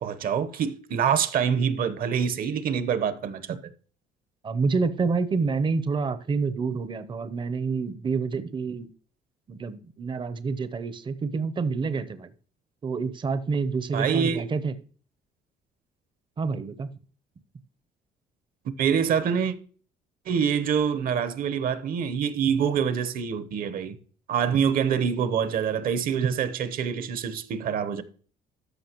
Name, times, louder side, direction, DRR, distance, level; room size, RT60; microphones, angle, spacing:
voice 1, 0.0-3.6 13.9-14.4 18.8-19.5 20.3-23.9 24.3-28.0, right 7 dB, 60° right, 0.9 m, -25 dB
voice 2, 4.4-8.9 9.5-12.3 12.8-14.7 16.4-16.9, right 4 dB, 30° right, 0.7 m, -28 dB
13.5 x 5.5 x 3.0 m
cardioid pair, 110°, 17 cm